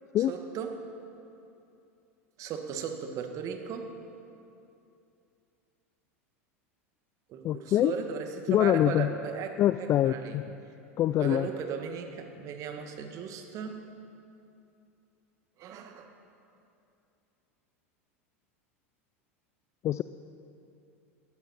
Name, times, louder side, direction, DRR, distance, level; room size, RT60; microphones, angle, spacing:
voice 1, 0.3-0.8 2.4-3.9 7.3-10.4 11.2-13.8 15.6-16.1, right 7 dB, 45° right, 5 dB, 1.7 m, -37 dB
voice 2, 7.4-7.9 8.5-9.1 9.6-10.5 11.0-11.5 19.8-20.0, left 12 dB, 40° left, 13 dB, 0.4 m, -25 dB
18.0 x 13.5 x 4.3 m, 2.7 s
hypercardioid pair, 95°, 8 cm